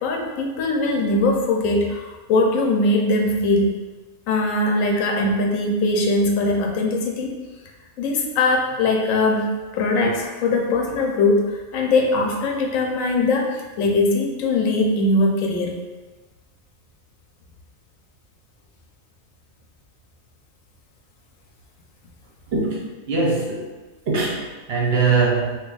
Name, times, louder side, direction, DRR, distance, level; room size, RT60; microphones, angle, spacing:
voice 1, 0.0-3.8 4.3-7.3 8.0-15.8, left 2 dB, 80° left, 1 dB, 1.0 m, -21 dB
voice 2, 22.5-23.7 24.1-25.6, right 4 dB, 65° right, -2 dB, 0.7 m, -22 dB
2.8 x 2.3 x 3.8 m, 1.2 s
omnidirectional pair, 1.4 m